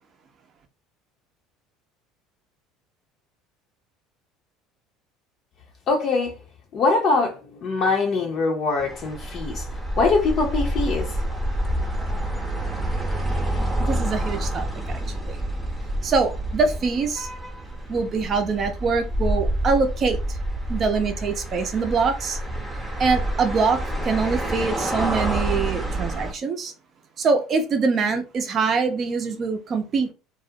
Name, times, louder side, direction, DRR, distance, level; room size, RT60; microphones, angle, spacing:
voice 1, 5.9-6.3 6.7-9.6 10.0-11.2, left 3 dB, 50° left, 0.6 m, -23 dB
sound 1, 8.8-26.3, right 1 dB, 10° right, 0.7 m, -28 dB
voice 2, 13.8-15.4 16.0-17.3 17.9-20.4 20.7-22.4 23.0-26.7 27.2-30.1, right 4 dB, 45° right, 0.5 m, -24 dB
2.3 x 2.1 x 2.7 m
hypercardioid pair, 80°, 0 cm